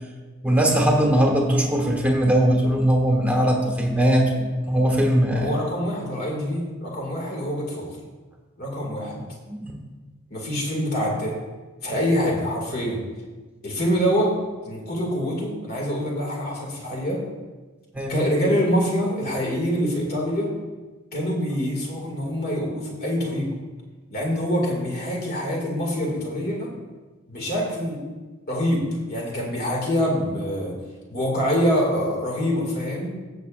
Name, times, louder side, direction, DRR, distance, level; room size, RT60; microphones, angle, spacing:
voice 1, 0.4-5.5 9.5-9.8 17.9-18.1, right 1 dB, 5° right, 0 dB, 1.3 m, -20 dB
voice 2, 5.3-7.9 8.6-9.2 10.3-11.4 11.8-13.0 13.6-17.2 18.1-20.5 21.1-23.5 24.1-26.7 27.3-28.0 28.5-30.7 31.1-33.1, equal, 45° left, -2 dB, 2.4 m, -25 dB
16.5 x 6.9 x 2.6 m, 1.3 s
head